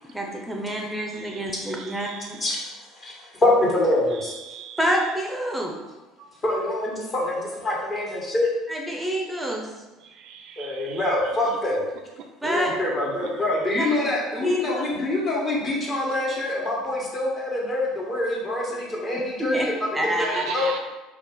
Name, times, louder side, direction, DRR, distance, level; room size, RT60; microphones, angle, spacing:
voice 1, 0.1-2.4 4.8-5.7 8.7-9.7 12.4-12.7 13.8-13.9 14.4-14.8 19.5-19.7 19.9-20.7, equal, 10° right, 0 dB, 0.7 m, -27 dB
voice 2, 1.8-2.3 4.4-4.8 10.0-11.0 20.3-20.8, right 7 dB, 55° right, 4 dB, 0.4 m, -39 dB
voice 3, 3.0-4.3 6.4-8.5 10.6-11.8 12.4-20.6, left 1 dB, 35° left, -3 dB, 1.4 m, -25 dB
4.7 x 2.4 x 3.7 m, 1.2 s
figure-of-eight pair, 60°, 0 cm